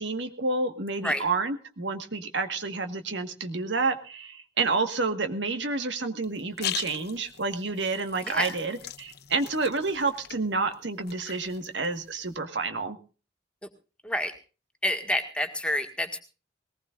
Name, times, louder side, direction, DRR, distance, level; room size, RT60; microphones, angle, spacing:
voice 1, 0.0-13.0, right 3 dB, 70° right, 7 dB, 1.7 m, -29 dB
sound 1, 6.2-12.4, left 10 dB, 60° left, 1.0 m, -40 dB
voice 2, 14.0-14.3 14.8-16.2, left 1 dB, 5° left, 5 dB, 1.9 m, -28 dB
21.0 x 19.0 x 2.5 m, 0.35 s
head